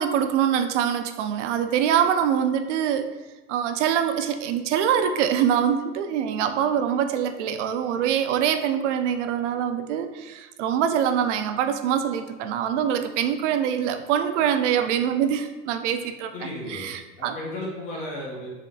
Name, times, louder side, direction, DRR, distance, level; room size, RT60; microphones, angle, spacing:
voice 1, 0.0-3.1 3.5-17.4, right 9 dB, 85° right, 8 dB, 0.5 m, -24 dB
voice 2, 16.3-18.5, left 1 dB, 20° left, -3 dB, 0.4 m, -34 dB
3.7 x 3.4 x 2.4 m, 1.1 s
supercardioid pair, 180°, 35 cm